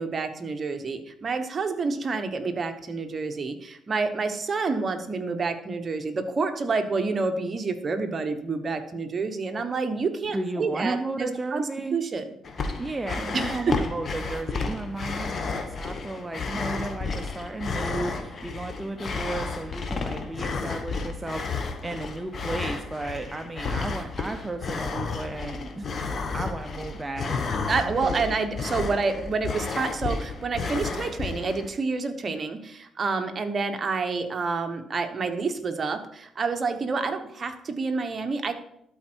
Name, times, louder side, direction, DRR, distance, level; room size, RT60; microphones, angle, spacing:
voice 1, 0.0-12.3 13.3-13.8 27.7-38.5, right 4 dB, 40° right, 6 dB, 1.0 m, -28 dB
voice 2, 10.3-12.0 12.8-27.3 27.8-28.3, right 2 dB, 15° right, 5 dB, 0.6 m, -34 dB
sound 1, 12.4-31.7, left 4 dB, 45° left, 1.1 m, -32 dB
12.0 x 4.3 x 4.5 m, 0.75 s
cardioid pair, 90°, 0 cm